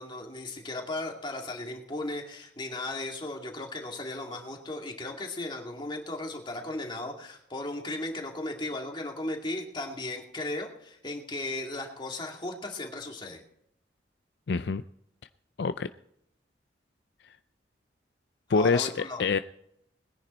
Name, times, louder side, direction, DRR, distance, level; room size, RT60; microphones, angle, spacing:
voice 1, 0.0-13.4 18.5-19.2, left 2 dB, 25° left, 1 dB, 2.3 m, -36 dB
voice 2, 14.5-14.8 15.6-15.9 17.2-17.3 18.5-19.4, left 4 dB, 65° left, 11 dB, 0.4 m, -26 dB
20.5 x 10.5 x 4.3 m, 0.74 s
head